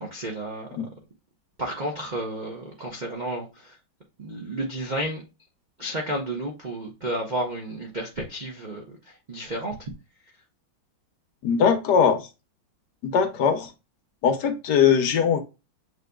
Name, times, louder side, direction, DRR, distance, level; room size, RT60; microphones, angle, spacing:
voice 1, 0.0-0.7 1.6-3.5 4.2-5.2 5.8-8.8 9.3-9.7, right 1 dB, 85° right, 0.4 m, -31 dB
voice 2, 11.4-12.3 13.0-13.7 14.2-15.4, left 7 dB, 65° left, 1.2 m, -20 dB
7.3 x 3.1 x 2.2 m
omnidirectional pair, 2.2 m